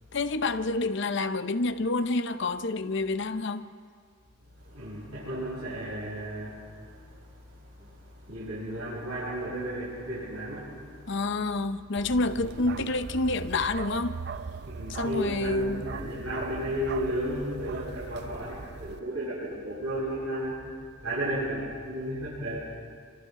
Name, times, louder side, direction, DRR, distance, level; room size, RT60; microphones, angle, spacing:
voice 1, 0.1-3.7 11.1-14.2 14.9-15.8, left 2 dB, 55° left, 0.7 m, -28 dB
voice 2, 4.6-11.2 11.6-11.7 12.3-12.5 14.6-20.6 21.0-22.6, right 1 dB, 80° right, 8.0 m, -34 dB
Bark, 12.0-19.0, right 4 dB, 50° right, 0.5 m, -40 dB
28.5 x 25.5 x 3.8 m
head